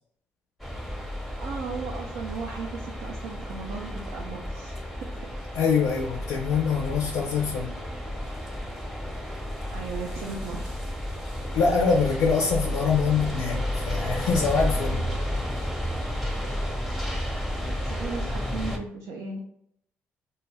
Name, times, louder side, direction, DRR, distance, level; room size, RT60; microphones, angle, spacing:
sound 1, 0.6-18.8, equal, ahead, 0.6 m, -32 dB
voice 1, 1.4-4.7 9.7-10.7 17.6-19.4, right 4 dB, 75° right, -1 dB, 0.4 m, -36 dB
voice 2, 5.5-7.7 11.5-15.0, left 5 dB, 80° left, 0 dB, 0.4 m, -24 dB
2.2 x 2.1 x 3.2 m, 0.71 s
hypercardioid pair, 50°, 6 cm